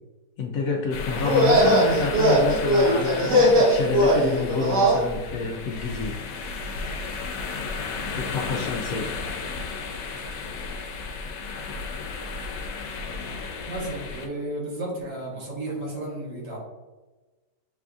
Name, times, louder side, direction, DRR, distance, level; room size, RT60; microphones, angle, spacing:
voice 1, 0.4-6.2 8.2-9.1, left 4 dB, 70° left, 2 dB, 0.8 m, -29 dB
sound 1, 0.9-14.3, left 4 dB, 85° left, 1.2 m, -34 dB
sound 2, 1.2-5.0, equal, 75° right, 1.7 m, -19 dB
voice 2, 13.6-16.6, right 1 dB, 90° right, -5 dB, 2.1 m, -33 dB
7.4 x 2.6 x 2.3 m, 1.2 s
omnidirectional pair, 1.8 m